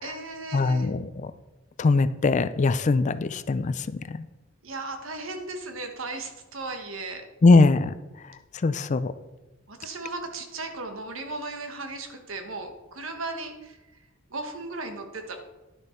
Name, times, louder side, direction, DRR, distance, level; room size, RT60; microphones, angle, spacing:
voice 1, 0.0-0.9 4.6-7.2 9.7-13.8 14.3-15.4, right 3 dB, 70° right, 5 dB, 1.3 m, -36 dB
voice 2, 0.5-1.0 1.8-3.7 7.4-7.9 8.6-9.1, left 3 dB, 35° left, 13 dB, 0.4 m, -20 dB
11.0 x 6.5 x 4.4 m, 1.1 s
head